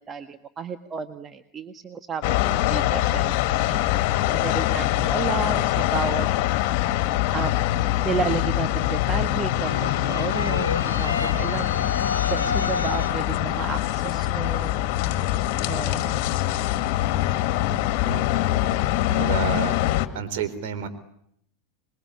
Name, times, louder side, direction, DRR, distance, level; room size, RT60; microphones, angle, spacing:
voice 1, 0.0-3.3 3.7-3.8 4.3-6.3 7.3-7.5 8.0-11.7 12.3-14.8 15.7-16.2, right 6 dB, 25° right, 9 dB, 1.6 m, -32 dB
sound 1, 2.2-20.1, left 14 dB, 55° left, 2.0 m, -24 dB
sound 2, 9.6-13.4, left 4 dB, 90° left, 1.1 m, -30 dB
voice 2, 17.6-18.2 19.1-19.8 20.1-20.9, right 7 dB, 60° right, 9 dB, 3.9 m, -31 dB
26.5 x 22.0 x 9.8 m, 0.73 s
hypercardioid pair, 85°, 0 cm